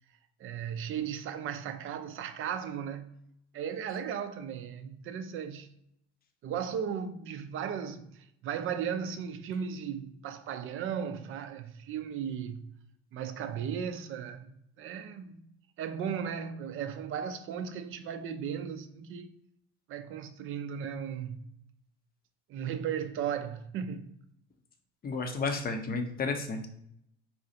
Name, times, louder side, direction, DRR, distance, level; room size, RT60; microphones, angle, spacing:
voice 1, 0.4-3.2 3.5-5.7 6.4-12.6 13.1-14.5 14.8-15.4 15.8-19.3 19.9-21.5 22.5-24.1, right 8 dB, 40° right, 0.4 m, -36 dB
voice 2, 25.0-26.7, left 4 dB, 30° left, 0.6 m, -32 dB
4.1 x 2.3 x 2.7 m
hypercardioid pair, 70°, 33 cm